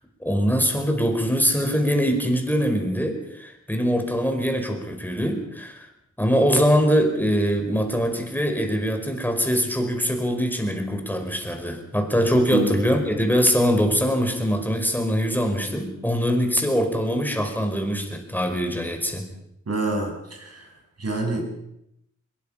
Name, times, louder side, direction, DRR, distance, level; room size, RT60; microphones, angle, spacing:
voice 1, 0.2-5.9 6.2-19.3, equal, 5° left, 4 dB, 5.1 m, -23 dB
voice 2, 19.7-20.7 21.0-21.5, right 2 dB, 55° right, 2 dB, 7.0 m, -26 dB
24.0 x 22.0 x 5.8 m, 0.80 s
wide cardioid pair, 80°, 30 cm